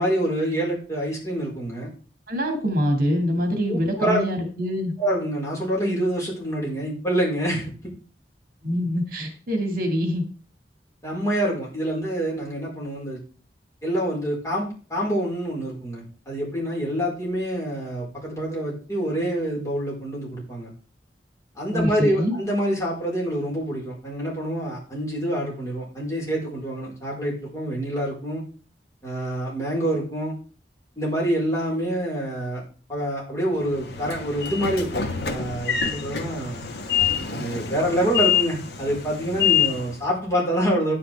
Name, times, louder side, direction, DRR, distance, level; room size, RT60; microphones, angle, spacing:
voice 1, 0.0-1.9 3.7-4.3 5.0-7.9 11.0-13.2 13.8-20.7 21.5-28.4 29.0-30.3 31.0-32.6 32.9-36.7 37.3-40.9, right 1 dB, 20° left, -4 dB, 4.8 m, -26 dB
voice 2, 2.3-4.9 8.6-10.3 21.7-22.4, equal, 55° right, 4 dB, 2.2 m, -24 dB
Train / Sliding door, 33.6-40.1, left 9 dB, 65° left, 1.5 m, -26 dB
10.0 x 10.0 x 3.5 m, 0.37 s
head